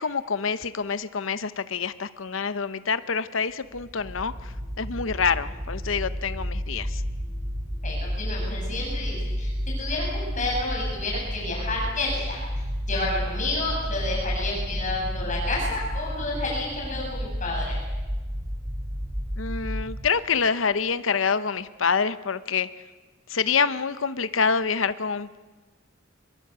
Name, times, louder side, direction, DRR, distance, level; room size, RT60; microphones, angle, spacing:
voice 1, 0.0-7.0 19.4-22.7 23.3-25.4, left 5 dB, 80° left, 14 dB, 0.9 m, -26 dB
sound 1, 3.7-20.1, equal, 15° right, 3.7 m, -31 dB
voice 2, 7.8-9.5 9.8-12.4 12.9-17.8, left 2 dB, 40° left, -3 dB, 7.6 m, -30 dB
23.5 x 22.0 x 8.2 m, 1.3 s
head